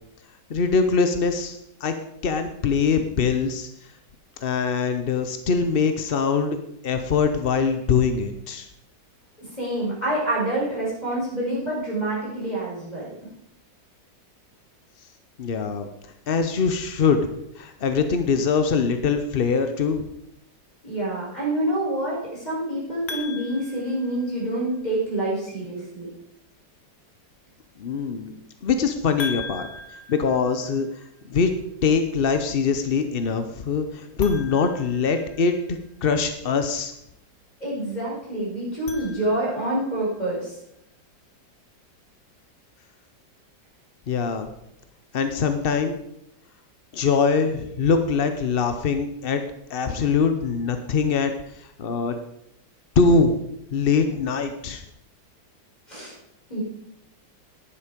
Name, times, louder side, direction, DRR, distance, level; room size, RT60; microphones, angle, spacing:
voice 1, 0.5-1.9 2.2-3.7 4.4-6.6 6.8-8.7 15.4-15.9 16.3-17.3 17.6-20.1 27.8-28.3 28.6-29.7 30.1-31.6 31.8-35.6 36.0-36.9 44.1-44.5 45.1-46.0 46.9-49.4 49.7-52.2 53.0-53.4 53.7-54.8, left 5 dB, 55° left, 8 dB, 0.6 m, -23 dB
voice 2, 9.4-13.0 20.8-26.1 37.6-40.5 55.9-56.1 56.5-56.6, right 1 dB, 20° left, -6 dB, 6.3 m, -27 dB
sound 1, 23.1-24.8 29.2-31.2 34.1-35.7 38.6-39.8, left 4 dB, 85° left, 2.2 m, -39 dB
11.5 x 10.0 x 5.2 m, 0.79 s
omnidirectional pair, 2.0 m